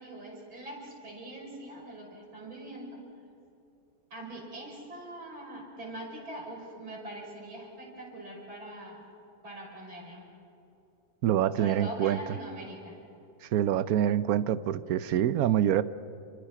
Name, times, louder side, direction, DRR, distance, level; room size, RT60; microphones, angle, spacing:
voice 1, 0.0-3.0 4.1-9.1 9.4-10.2 11.6-13.0, right 1 dB, 80° right, -2 dB, 6.6 m, -42 dB
voice 2, 11.2-12.2 13.5-15.8, right 11 dB, 65° right, 14 dB, 1.0 m, -25 dB
29.5 x 24.0 x 5.9 m, 2.8 s
omnidirectional pair, 2.1 m